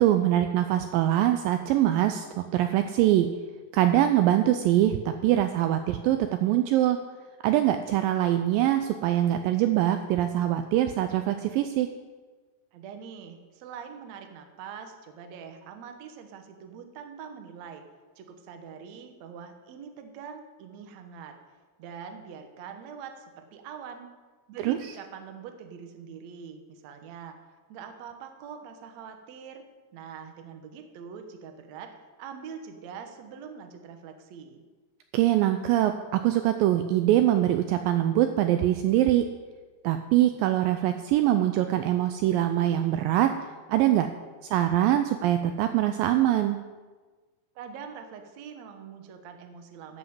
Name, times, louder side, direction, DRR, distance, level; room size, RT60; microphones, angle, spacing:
voice 1, 0.0-3.3 3.7-7.0 7.4-11.9 24.6-24.8 35.1-39.3 39.8-43.3 43.7-44.1 44.4-46.6, right 13 dB, 90° right, 8 dB, 2.0 m, -23 dB
voice 2, 12.7-17.8 18.2-21.4 21.8-24.1 24.5-27.4 27.7-29.6 29.9-34.6 47.5-50.0, right 7 dB, 70° right, 6 dB, 1.7 m, -43 dB
13.0 x 5.8 x 7.7 m, 1.3 s
omnidirectional pair, 4.6 m